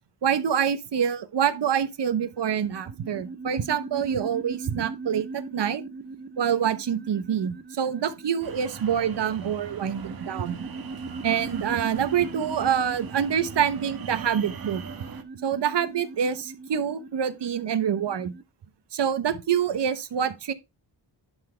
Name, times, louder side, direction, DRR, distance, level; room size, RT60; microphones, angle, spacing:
voice 1, 0.2-5.8 6.4-10.6 11.2-14.8 15.4-18.3 18.9-20.5, right 8 dB, 75° right, 1.0 m, -26 dB
sound 1, 2.1-18.4, right 3 dB, 25° right, 0.6 m, -40 dB
sound 2, 8.4-15.2, right 6 dB, 55° right, 1.2 m, -41 dB
11.0 x 4.1 x 4.4 m
wide cardioid pair, 140°, 42 cm